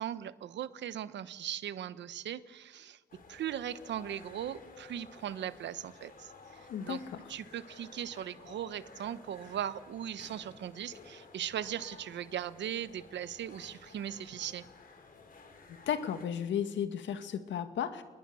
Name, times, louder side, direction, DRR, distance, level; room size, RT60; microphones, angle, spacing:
voice 1, 0.0-3.0 3.3-7.0 7.3-14.7, right 10 dB, 70° right, 15 dB, 1.1 m, -39 dB
sound 1, 3.1-16.3, left 4 dB, 50° left, 4.0 m, -54 dB
voice 2, 15.9-18.0, left 8 dB, 80° left, 9 dB, 2.1 m, -34 dB
27.5 x 21.0 x 7.0 m, 1.3 s
cardioid pair, 125°, 19 cm